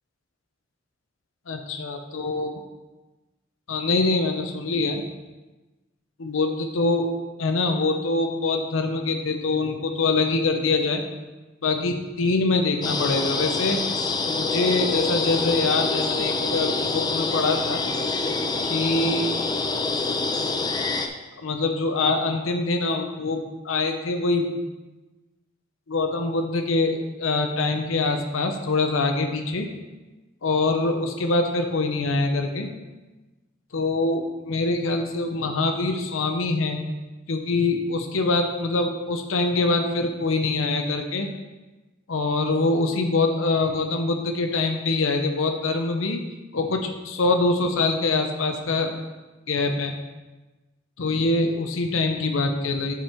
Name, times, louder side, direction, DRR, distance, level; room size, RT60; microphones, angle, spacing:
voice 1, 1.5-2.5 3.7-5.0 6.2-7.1 7.4-11.0 11.6-13.8 14.2-17.8 18.6-19.4 21.4-24.6 25.9-29.7 30.4-32.7 33.7-36.8 37.3-41.3 42.1-46.2 46.5-48.9 49.5-49.9 51.0-53.0, left 3 dB, 80° left, 5 dB, 0.7 m, -24 dB
sound 1, 12.8-21.1, left 3 dB, 20° left, 0.5 m, -26 dB
7.8 x 5.3 x 4.4 m, 1.2 s
head